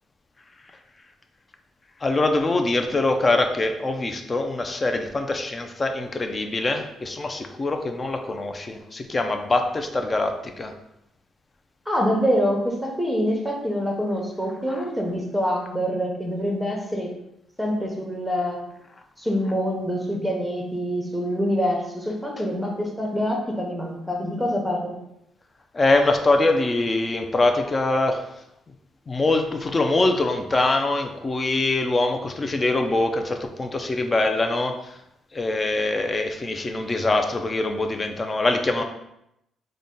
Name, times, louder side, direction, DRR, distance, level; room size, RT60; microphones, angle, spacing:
voice 1, 2.0-10.7 14.7-14.8 25.7-28.3 29.1-35.0 35.3-38.8, left 2 dB, 30° left, 6 dB, 0.4 m, -23 dB
voice 2, 11.9-17.1 17.6-18.6 19.2-24.9, equal, 5° left, 0 dB, 0.9 m, -25 dB
3.8 x 2.2 x 3.7 m, 0.83 s
cardioid pair, 90°, 0 cm